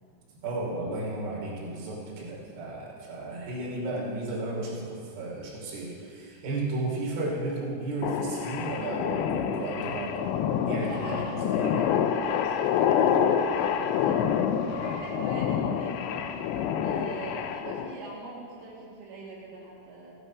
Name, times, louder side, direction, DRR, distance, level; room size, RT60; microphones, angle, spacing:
voice 1, 0.4-10.2 10.7-11.7 14.0-14.2, right 2 dB, 55° right, -4 dB, 4.5 m, -33 dB
sound 1, 8.0-17.9, left 8 dB, 80° left, 2.8 m, -27 dB
voice 2, 10.8-16.0 16.8-20.1, right 2 dB, 80° right, -5 dB, 4.6 m, -42 dB
16.0 x 11.0 x 6.0 m, 2.3 s
omnidirectional pair, 5.5 m